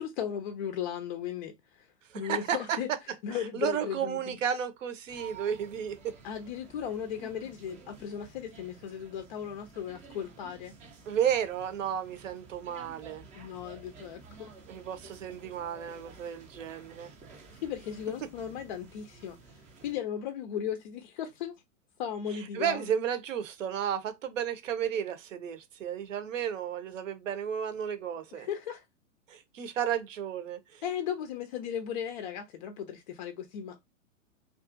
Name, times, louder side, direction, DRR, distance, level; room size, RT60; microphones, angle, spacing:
voice 1, 0.0-1.9 2.2-2.9 3.2-4.4 6.2-10.7 13.4-14.5 17.6-19.4 19.8-21.5 22.0-23.0 28.3-28.8 30.8-33.8, left 9 dB, 35° left, 0.4 m, -36 dB
voice 2, 2.1-2.8 3.3-6.1 11.1-13.2 14.7-17.1 22.5-28.5 29.3-30.8, right 9 dB, 65° right, 0.8 m, -33 dB
sound 1, 5.1-19.9, right 4 dB, 20° right, 0.5 m, -52 dB
2.5 x 2.3 x 2.5 m
figure-of-eight pair, 110°, 41 cm